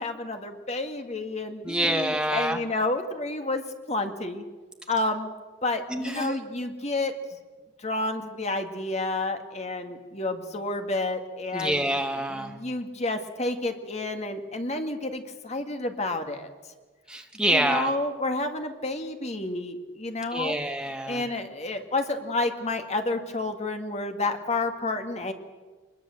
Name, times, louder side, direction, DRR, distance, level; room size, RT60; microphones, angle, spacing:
voice 1, 0.0-3.6 3.9-4.4 4.9-5.3 5.6-7.1 7.8-11.8 12.3-16.5 17.5-20.6 21.1-25.3, left 2 dB, 35° left, 6 dB, 2.1 m, -30 dB
voice 2, 1.6-2.6 5.9-6.4 11.5-12.5 17.1-17.9 20.3-21.2, right 1 dB, 5° right, 4 dB, 2.0 m, -27 dB
23.5 x 21.5 x 7.8 m, 1.3 s
head